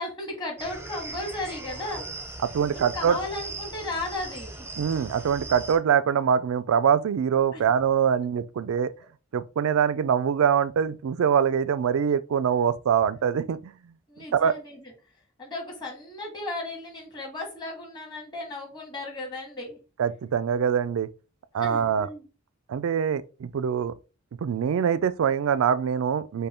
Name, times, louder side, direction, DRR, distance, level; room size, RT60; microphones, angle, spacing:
voice 1, 0.0-2.0 2.7-4.5 7.5-7.6 14.1-14.9 15.4-19.8 21.5-22.3, left 2 dB, 20° left, 1.6 m, -35 dB
sound 1, 0.6-5.8, right 2 dB, 10° right, 0.6 m, -39 dB
voice 2, 2.4-3.2 4.8-8.9 9.3-13.7 14.3-14.6 20.0-21.1 21.5-22.1 22.7-23.9 24.4-26.5, right 7 dB, 85° right, 0.3 m, -24 dB
5.3 x 2.2 x 4.2 m
head